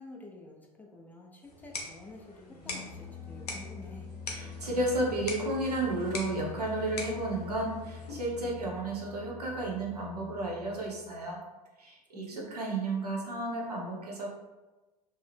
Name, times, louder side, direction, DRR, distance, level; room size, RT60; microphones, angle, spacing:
voice 1, 0.0-3.0 3.3-4.1 12.1-12.6, left 2 dB, 10° left, -1 dB, 0.3 m, -49 dB
sound 1, 1.4-8.4, left 2 dB, 75° left, 0.6 m, -43 dB
sound 2, 2.4-11.2, left 6 dB, 10° right, 0.9 m, -45 dB
voice 2, 4.3-11.4 11.8-14.3, right 2 dB, 80° right, -2 dB, 0.7 m, -33 dB
2.5 x 2.0 x 3.3 m, 1.2 s
figure-of-eight pair, 80°, 20 cm